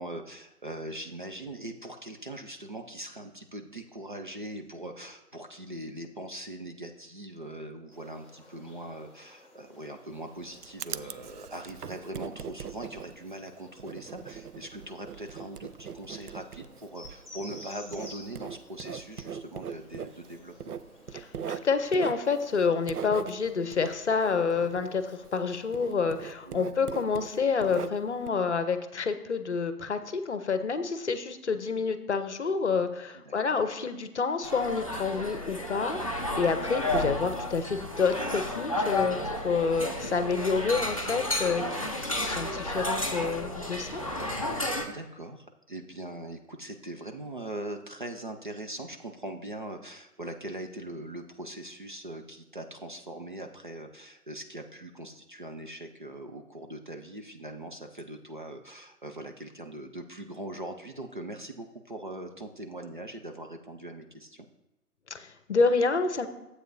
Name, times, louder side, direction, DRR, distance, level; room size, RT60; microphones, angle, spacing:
voice 1, 0.0-20.8 26.5-26.8 33.1-33.3 44.8-64.5, right 1 dB, 35° right, 4 dB, 0.5 m, -41 dB
sound 1, 7.9-25.8, left 2 dB, ahead, 2.4 m, -54 dB
Writing, 10.1-25.5 25.7-28.3, right 7 dB, 75° right, 0.6 m, -41 dB
voice 2, 21.1-36.0 36.4-39.2 39.4-44.0 65.1-66.3, left 5 dB, 45° left, 10 dB, 0.8 m, -28 dB
sound 2, 34.4-44.9, left 1 dB, 25° left, 0.5 m, -32 dB
13.0 x 8.0 x 2.6 m, 0.96 s
figure-of-eight pair, 140°, 47 cm